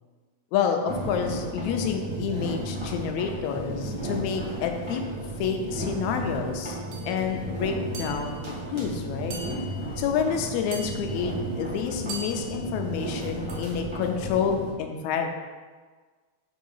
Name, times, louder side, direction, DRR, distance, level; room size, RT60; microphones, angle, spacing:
voice 1, 0.5-5.0 5.4-6.8 7.1-8.4 8.7-9.4 10.0-15.3, left 7 dB, 80° left, 4 dB, 2.0 m, -28 dB
sound 1, 0.9-14.7, right 1 dB, 25° right, 0.6 m, -34 dB
sound 2, 6.9-7.1 7.9-8.5 9.3-10.0 10.7-11.3 12.1-12.7 13.5-13.9, right 2 dB, 70° right, 2.1 m, -40 dB
4.9 x 4.7 x 5.4 m, 1.4 s
omnidirectional pair, 3.3 m